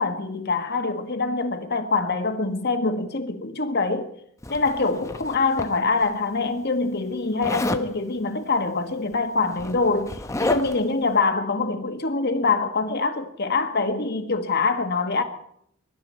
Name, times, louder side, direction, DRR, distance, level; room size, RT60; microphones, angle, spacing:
voice 1, 0.0-4.1 4.5-15.2, left 3 dB, 55° left, 1.6 m, -24 dB
Zipper (clothing), 4.4-6.1 7.4-7.9 9.0-9.1 9.4-10.9, left 2 dB, 15° left, 0.9 m, -30 dB
23.0 x 12.0 x 4.4 m
head